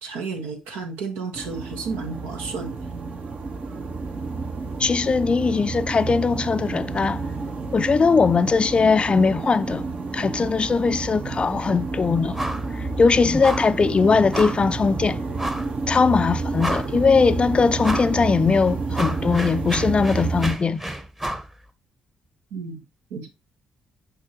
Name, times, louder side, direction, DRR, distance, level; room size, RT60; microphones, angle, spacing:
voice 1, 0.0-2.8 22.5-22.8 23.1-23.3, right 4 dB, 75° right, 1.2 m, -32 dB
sound 1, 1.3-20.5, right 4 dB, 50° right, 1.1 m, -30 dB
voice 2, 4.8-7.2 7.7-9.9 10.1-12.4 12.7-15.2 15.9-20.8, left 5 dB, 35° left, 0.4 m, -20 dB
sound 2, 12.3-12.7 13.0-13.1 13.4-13.8 14.3-14.7 15.4-15.7 16.2-16.3 16.6-17.1 17.8-18.2 18.5-21.5, right 1 dB, 15° right, 1.1 m, -30 dB
6.5 x 5.3 x 2.9 m
hypercardioid pair, 40°, 3 cm